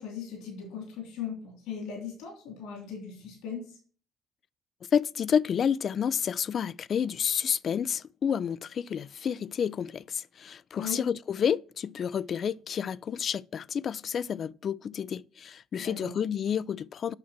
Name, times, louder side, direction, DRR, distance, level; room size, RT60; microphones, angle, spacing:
voice 1, 0.0-3.6 10.7-11.0 15.8-16.1, left 7 dB, 85° left, 3.3 m, -38 dB
voice 2, 4.9-17.1, left 7 dB, 55° left, 0.4 m, -30 dB
8.7 x 6.0 x 7.4 m
supercardioid pair, 75°, 0 cm